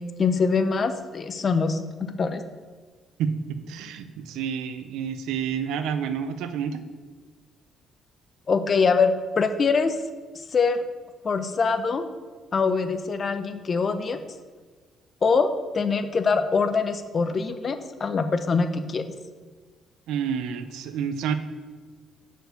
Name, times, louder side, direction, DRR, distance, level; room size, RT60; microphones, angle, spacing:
voice 1, 0.0-1.8 2.2-2.4 8.5-9.9 10.4-10.8 11.2-12.1 12.5-14.2 15.2-19.0, left 4 dB, 40° left, 9 dB, 0.6 m, -23 dB
voice 2, 3.2-6.8 20.1-21.3, right 7 dB, 85° right, 10 dB, 0.5 m, -29 dB
6.3 x 4.6 x 6.7 m, 1.4 s
cardioid pair, 100°, 0 cm